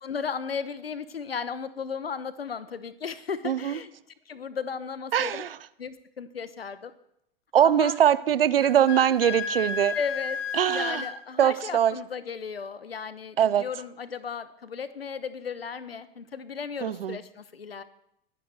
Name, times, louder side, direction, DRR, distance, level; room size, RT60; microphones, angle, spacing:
voice 1, 0.0-3.9 4.3-5.4 5.8-6.9 7.6-8.0 9.9-10.4 10.7-17.8, left 6 dB, 80° left, 15 dB, 0.9 m, -35 dB
voice 2, 3.4-3.8 5.1-5.6 7.5-10.0 10.5-11.0 11.4-12.0 13.4-13.6 16.8-17.2, right 10 dB, 70° right, 17 dB, 0.7 m, -22 dB
Wind instrument woodwind instrument, 8.6-11.2, left 5 dB, 35° left, 1.7 m, -32 dB
21.5 x 10.0 x 3.3 m, 0.79 s
figure-of-eight pair, 90°, 30 cm